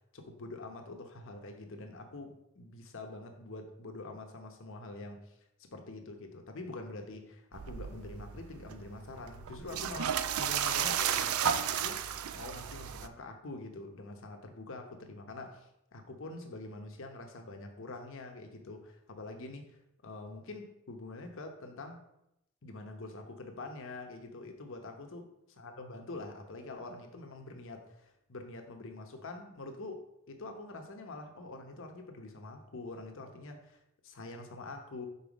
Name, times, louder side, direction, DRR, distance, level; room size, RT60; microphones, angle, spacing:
voice 1, 0.1-5.3 5.7-12.0 12.3-19.8 20.0-22.0 22.6-35.1, left 2 dB, 65° left, 0.9 m, -45 dB
sound 1, 7.5-13.1, right 8 dB, 85° right, 0.4 m, -33 dB
5.6 x 3.9 x 5.1 m
head